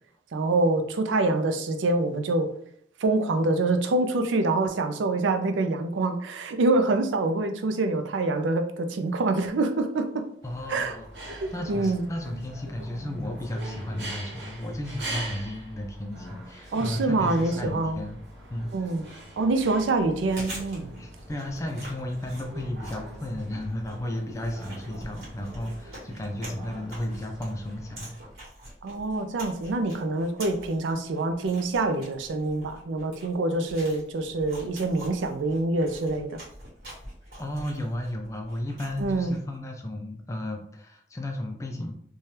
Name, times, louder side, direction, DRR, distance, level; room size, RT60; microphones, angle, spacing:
voice 1, 0.3-2.5 3.0-10.2 10.7-11.0 11.3-12.0 16.7-18.0 18.7-19.0 19.4-20.9 28.8-36.4 39.0-39.4, right 2 dB, 90° right, 7 dB, 0.4 m, -26 dB
voice 2, 10.4-18.2 18.5-18.7 21.0-28.2 37.4-41.9, left 1 dB, 15° left, 3 dB, 0.3 m, -34 dB
sound 1, 10.4-28.1, right 1 dB, 70° right, 0.9 m, -42 dB
Chewing mastication, 20.0-39.5, right 1 dB, 55° right, 1.3 m, -45 dB
2.7 x 2.2 x 3.2 m, 0.65 s
head